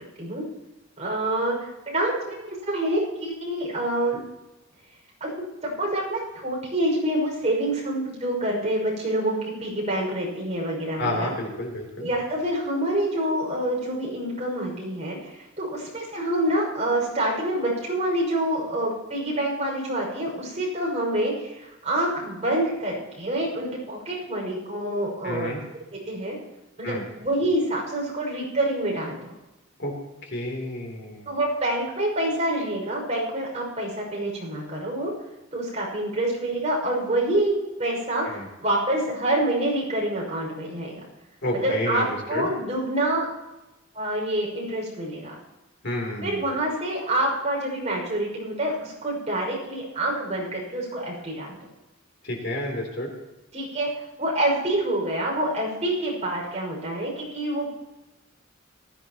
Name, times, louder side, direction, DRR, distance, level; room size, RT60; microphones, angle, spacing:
voice 1, 1.0-2.1 2.4-4.2 5.2-5.3 5.6-11.3 12.0-25.5 25.9-26.4 26.8-29.3 31.3-35.1 35.5-40.9 41.5-43.2 43.9-45.3 46.2-51.6 53.5-53.9 54.2-57.7, right 1 dB, 35° right, -3 dB, 6.0 m, -27 dB
voice 2, 11.0-12.1 25.2-25.6 26.8-27.0 29.8-30.0 30.2-31.3 38.2-38.5 41.4-42.5 45.8-46.4 52.2-53.1, left 1 dB, 55° left, 0 dB, 3.4 m, -30 dB
19.5 x 14.5 x 3.0 m, 1.0 s
head